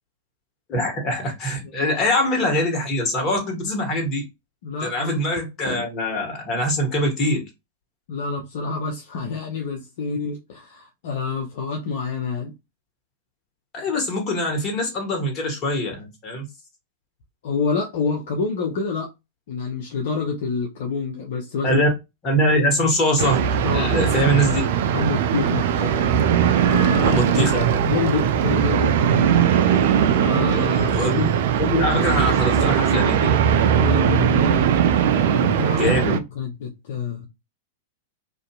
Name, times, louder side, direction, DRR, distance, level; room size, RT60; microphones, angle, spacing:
voice 1, 0.7-4.2 4.8-7.4 13.7-16.5 21.6-21.9 22.2-23.4 23.7-24.6 25.8-25.9 27.0-27.7 30.9-31.3 31.6-33.3 35.8-36.1, equal, 35° left, 1.3 m, -23 dB
voice 2, 4.6-5.2 5.6-5.8 8.1-12.5 17.4-19.1 19.5-21.8 23.6-24.3 24.9-25.6 26.6-27.5 27.8-28.9 30.2-31.0 33.8-34.6 34.9-37.3, left 4 dB, 60° left, 0.6 m, -27 dB
sound 1, 23.2-36.2, right 8 dB, 60° right, 0.3 m, -19 dB
2.6 x 2.4 x 2.3 m
hypercardioid pair, 100°, 0 cm